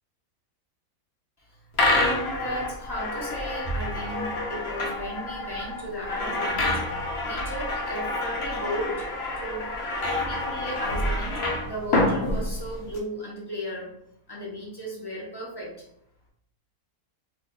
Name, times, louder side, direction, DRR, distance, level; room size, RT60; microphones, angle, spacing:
voice 1, 1.4-9.1 9.4-9.7 10.3-13.9 14.3-15.7, equal, 25° left, -3 dB, 0.6 m, -36 dB
sound 1, 1.7-13.0, left 2 dB, 55° left, 0.8 m, -28 dB
2.5 x 2.5 x 3.6 m, 0.73 s
omnidirectional pair, 1.6 m